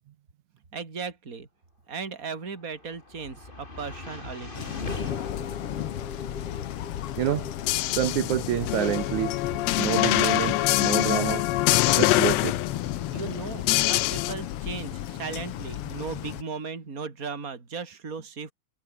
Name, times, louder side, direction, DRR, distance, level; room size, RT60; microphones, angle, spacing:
voice 1, 0.7-1.5 1.9-4.7 13.1-18.5, right 5 dB, 25° right, 3.6 m, -37 dB
sound 1, 2.4-14.6, left 2 dB, 15° left, 2.9 m, -43 dB
sound 2, 4.5-16.4, left 12 dB, 65° left, 1.5 m, -34 dB
voice 2, 7.2-7.5 8.0-9.4 9.8-11.5 11.9-12.6, right 12 dB, 70° right, 2.5 m, -27 dB
sound 3, 7.7-14.3, left 18 dB, 85° left, 1.5 m, -24 dB
omnidirectional pair, 3.7 m